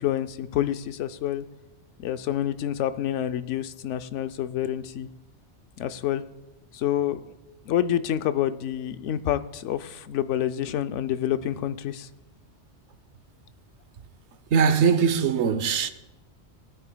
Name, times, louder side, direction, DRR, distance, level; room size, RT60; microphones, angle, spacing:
voice 1, 0.0-1.5 2.0-5.1 5.8-6.2 6.7-7.3 7.6-12.1, left 11 dB, 90° left, 0.9 m, -28 dB
voice 2, 14.5-15.9, right 6 dB, 70° right, 1.0 m, -21 dB
19.0 x 9.1 x 2.2 m
omnidirectional pair, 1.2 m